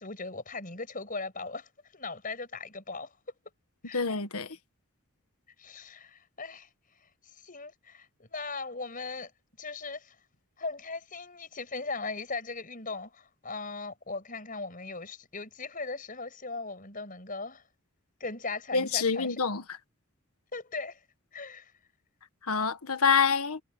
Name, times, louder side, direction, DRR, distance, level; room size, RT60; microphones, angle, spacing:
voice 1, 0.0-3.1 3.8-4.1 5.6-6.7 7.0-9.3 9.6-10.1 10.6-17.6 18.2-19.4 20.5-21.0 21.3-21.7, left 3 dB, 40° left, 6.5 m, -39 dB
voice 2, 3.9-4.5 18.7-19.6 22.5-23.6, left 5 dB, 85° left, 1.6 m, -26 dB
head